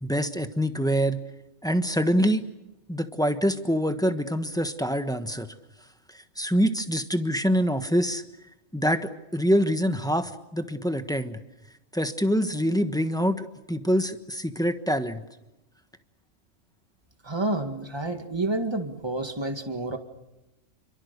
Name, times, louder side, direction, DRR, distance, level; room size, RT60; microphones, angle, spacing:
voice 1, 0.0-1.2 1.6-2.4 2.9-5.5 6.1-8.2 8.7-11.4 11.9-15.2, equal, 5° left, 8 dB, 1.2 m, -25 dB
voice 2, 17.2-20.0, right 2 dB, 20° right, 6 dB, 2.0 m, -29 dB
28.0 x 24.5 x 6.8 m, 0.95 s
omnidirectional pair, 1.3 m